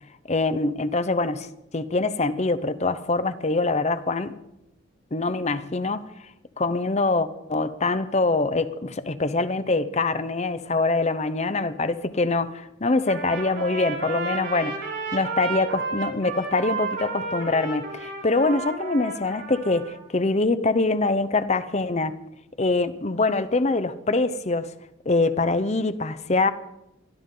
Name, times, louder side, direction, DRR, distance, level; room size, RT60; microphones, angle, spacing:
voice 1, 0.2-1.5 1.7-4.4 5.1-6.1 6.6-22.1 22.6-24.7 25.1-26.5, left 3 dB, 35° left, 0.8 m, -24 dB
Trumpet, 13.0-20.0, right 3 dB, 60° right, 6.1 m, -32 dB
23.0 x 13.0 x 3.8 m
head